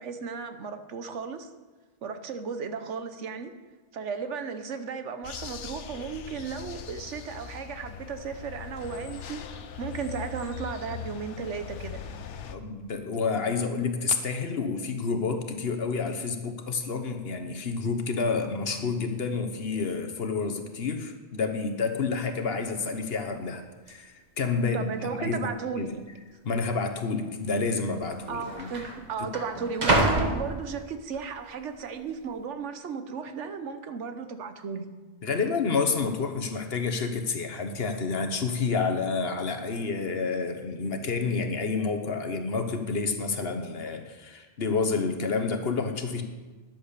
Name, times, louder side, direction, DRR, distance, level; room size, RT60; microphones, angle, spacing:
voice 1, 0.0-1.5 2.0-3.5 3.9-12.0 24.7-26.0 28.3-34.9, right 5 dB, 90° right, 9 dB, 1.2 m, -35 dB
sound 1, 5.2-12.5, left 7 dB, 85° left, 1.1 m, -40 dB
voice 2, 12.5-24.9 25.2-25.9 26.4-28.7 35.2-46.2, left 4 dB, 60° left, 6 dB, 1.3 m, -29 dB
sound 2, 22.4-22.5 22.8-23.2 23.9-24.0 24.7-25.2 25.5-25.6 26.5-26.7 27.7-27.8 28.0-31.2 31.7-32.1, right 1 dB, 40° right, 1.5 m, -29 dB
10.5 x 8.0 x 6.7 m, 1.3 s
omnidirectional pair, 1.2 m